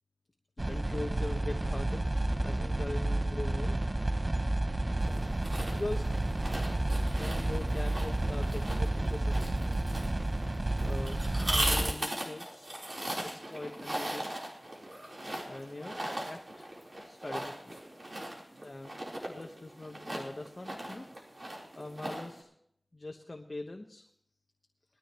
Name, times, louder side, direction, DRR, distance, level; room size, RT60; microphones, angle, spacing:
voice 1, 0.6-2.1 2.4-3.8 5.7-6.1 7.2-9.6 10.8-12.7 13.5-14.4 14.9-16.0 16.2-16.7 17.0-17.8 18.5-18.9 19.3-21.1 21.4-22.5 22.9-24.0, left 2 dB, 50° left, 2 dB, 1.2 m, -42 dB
sound 1, 0.6-11.9, right 1 dB, 40° right, 0.7 m, -31 dB
sound 2, 5.0-22.4, right 1 dB, 55° right, 4.0 m, -38 dB
20.5 x 13.5 x 3.1 m, 0.69 s
wide cardioid pair, 45°, 0 cm